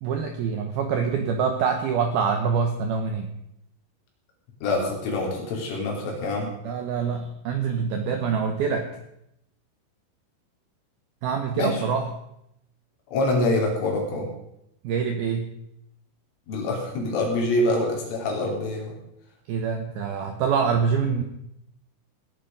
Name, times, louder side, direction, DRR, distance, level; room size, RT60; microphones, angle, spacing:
voice 1, 0.0-3.3 6.6-8.9 11.2-12.1 14.8-15.5 19.5-21.2, right 6 dB, 75° right, 5 dB, 2.2 m, -25 dB
voice 2, 4.6-6.5 11.6-11.8 13.1-14.3 16.5-19.0, left 2 dB, 75° left, -1 dB, 5.8 m, -25 dB
18.0 x 10.0 x 5.3 m, 0.80 s
omnidirectional pair, 5.7 m